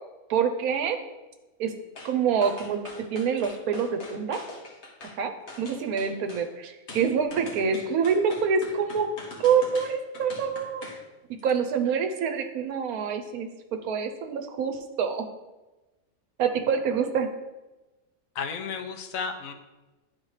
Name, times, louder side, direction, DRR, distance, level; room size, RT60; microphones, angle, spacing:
voice 1, 0.3-1.0 1.6-1.8 2.0-4.4 5.2-9.1 9.4-10.8 11.4-13.5 13.8-15.3 16.4-17.3, right 6 dB, 80° right, 6 dB, 1.2 m, -26 dB
sound 1, 2.0-2.1 2.4-5.2 5.5-6.5 6.9-11.0 11.4-11.5, left 2 dB, 50° left, 1.4 m, -43 dB
voice 2, 18.3-19.5, left 5 dB, 70° left, 7 dB, 1.0 m, -33 dB
10.5 x 4.2 x 3.2 m, 1.1 s
omnidirectional pair, 1.5 m